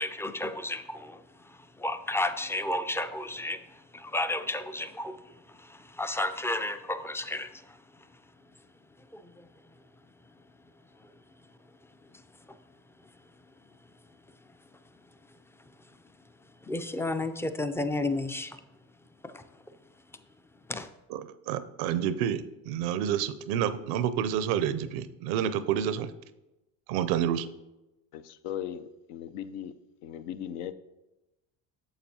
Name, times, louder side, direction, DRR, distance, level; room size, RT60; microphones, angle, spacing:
voice 1, 0.0-7.8 9.1-9.5 12.5-12.6 16.6-18.6 19.2-19.5 20.7-20.9, left 2 dB, 5° left, 10 dB, 0.3 m, -33 dB
voice 2, 21.5-26.1 26.9-27.5, right 9 dB, 75° right, 13 dB, 0.6 m, -29 dB
voice 3, 28.1-29.7 30.0-30.7, left 10 dB, 75° left, 11 dB, 0.6 m, -38 dB
8.8 x 6.8 x 2.8 m, 0.98 s
hypercardioid pair, 70°, 43 cm